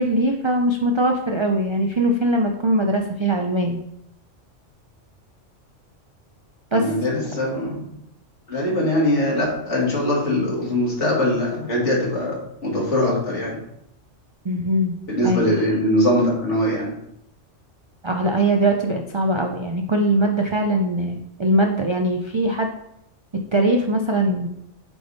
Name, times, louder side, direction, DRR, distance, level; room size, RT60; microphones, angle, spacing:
voice 1, 0.0-3.8 6.7-6.8 14.4-15.5 18.0-22.7 23.5-24.5, right 1 dB, 50° right, 3 dB, 0.3 m, -21 dB
voice 2, 6.7-7.9 8.5-13.6 15.1-16.9, left 1 dB, 70° left, -3 dB, 2.3 m, -22 dB
8.0 x 3.5 x 4.0 m, 0.76 s
omnidirectional pair, 1.3 m